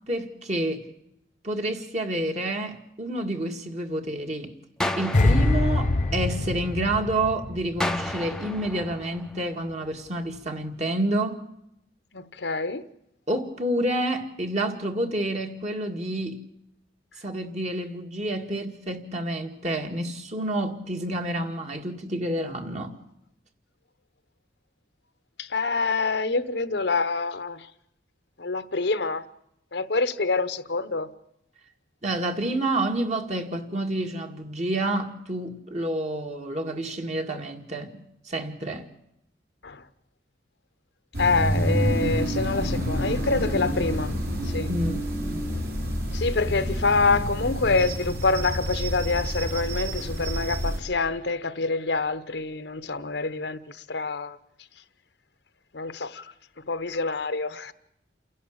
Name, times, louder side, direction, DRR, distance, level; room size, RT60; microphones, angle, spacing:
voice 1, 0.1-0.9 1.4-4.5 5.0-11.5 13.3-16.4 17.2-22.9 32.0-38.8 44.7-45.1, right 1 dB, 40° right, 2.0 m, -29 dB
sound 1, 4.8-6.9 7.8-9.9, left 1 dB, 5° left, 0.8 m, -33 dB
sound 2, 5.1-8.3 8.6-8.9, left 2 dB, 45° left, 0.8 m, -24 dB
voice 2, 12.1-12.9 25.4-27.7 28.4-29.2 29.7-31.1 39.6-39.8 41.2-44.1 44.4-44.7 46.1-54.4 55.7-56.3 56.7-57.7, left 3 dB, 70° left, 1.0 m, -26 dB
sound 3, 41.1-50.8, equal, 60° right, 4.3 m, -28 dB
28.5 x 11.0 x 8.7 m
head